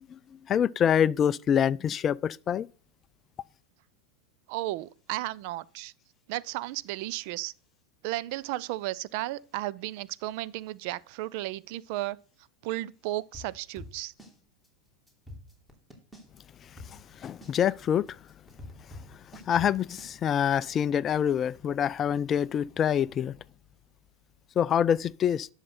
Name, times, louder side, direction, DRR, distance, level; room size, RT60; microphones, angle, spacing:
voice 1, 0.5-2.7 16.9-18.2 19.3-23.3 24.6-25.5, left 9 dB, 30° left, 0.3 m, -26 dB
voice 2, 4.5-5.9 6.3-7.5 8.0-12.2 12.6-14.1, right 16 dB, 55° right, 0.5 m, -34 dB
sound 1, 13.3-14.4 14.6-14.7 15.1-16.4 16.8-20.1, left 1 dB, 5° right, 3.1 m, -45 dB
10.5 x 6.6 x 4.2 m
figure-of-eight pair, 90°, 0 cm